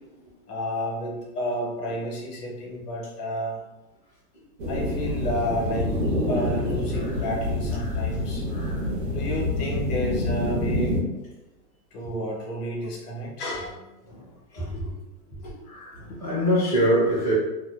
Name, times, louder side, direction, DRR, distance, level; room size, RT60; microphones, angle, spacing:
voice 1, 0.5-3.6 4.7-6.0 6.3-10.9 11.9-13.9 14.5-14.8 15.6-16.5, equal, 65° left, -2 dB, 0.9 m, -31 dB
sound 1, 4.6-11.0, left 1 dB, 70° right, 0.8 m, -27 dB
voice 2, 14.5-14.9 15.4-15.5 16.0-17.3, equal, 25° left, -12 dB, 0.4 m, -24 dB
2.6 x 2.2 x 2.3 m, 1.0 s
hypercardioid pair, 180°, 50 cm